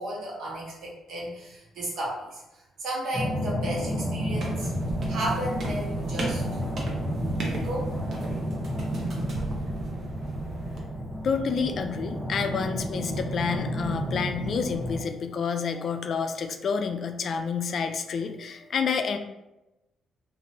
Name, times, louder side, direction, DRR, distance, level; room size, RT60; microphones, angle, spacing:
voice 1, 0.0-4.7 5.1-6.4 7.4-7.9, right 1 dB, 75° right, -4 dB, 1.1 m, -33 dB
sound 1, 3.1-15.0, equal, ahead, 0.9 m, -31 dB
sound 2, 4.3-10.8, right 1 dB, 55° right, 0.7 m, -37 dB
voice 2, 11.2-19.2, left 6 dB, 55° left, 7 dB, 0.3 m, -29 dB
2.9 x 2.5 x 2.8 m, 0.97 s
cardioid pair, 90°, 0 cm